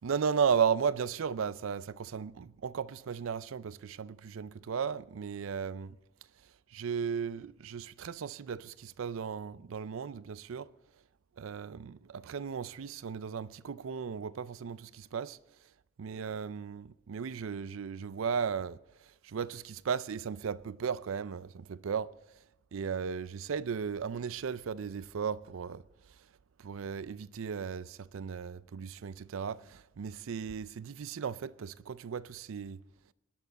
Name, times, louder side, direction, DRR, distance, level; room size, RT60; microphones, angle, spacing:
voice 1, 0.0-6.0 6.7-10.7 11.4-15.4 16.0-18.8 19.2-22.1 22.7-25.8 26.6-32.8, right 6 dB, 70° right, 0.4 m, -35 dB
18.0 x 11.0 x 4.0 m
head